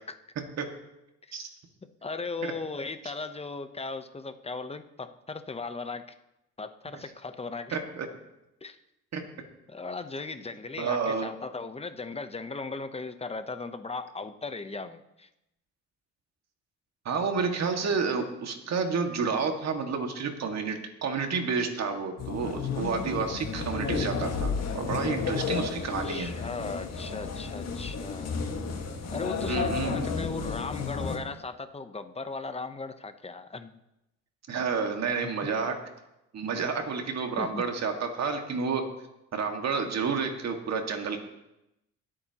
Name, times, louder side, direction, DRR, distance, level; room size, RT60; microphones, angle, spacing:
voice 1, 1.8-6.1 6.6-7.8 8.6-8.8 9.7-15.3 26.0-28.4 29.1-33.8 35.2-35.5 37.4-37.6, left 3 dB, 20° left, 10 dB, 0.9 m, -37 dB
voice 2, 7.7-8.1 9.1-9.2 10.8-11.3 17.1-26.3 29.4-30.1 34.5-35.7 36.3-38.9 39.3-41.2, right 5 dB, 60° right, 4 dB, 2.0 m, -30 dB
sound 1, 22.2-31.2, left 5 dB, 60° left, 1.8 m, -32 dB
22.0 x 8.7 x 3.0 m, 0.88 s
cardioid pair, 90°, 30 cm